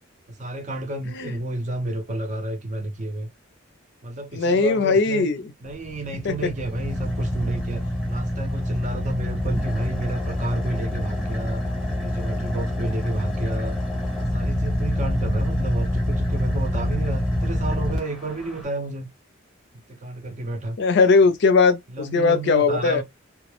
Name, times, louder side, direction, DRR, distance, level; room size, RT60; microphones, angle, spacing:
voice 1, 0.3-3.3 4.0-5.3 5.6-11.6 12.0-13.8 14.2-19.1 19.9-20.8 21.9-23.0, right 1 dB, 35° right, 0.5 m, -30 dB
voice 2, 4.3-5.4 6.2-6.5 20.8-23.0, left 4 dB, 55° left, 0.4 m, -19 dB
Car / Idling, 5.7-18.6, left 1 dB, ahead, 0.8 m, -26 dB
2.2 x 2.0 x 2.9 m
head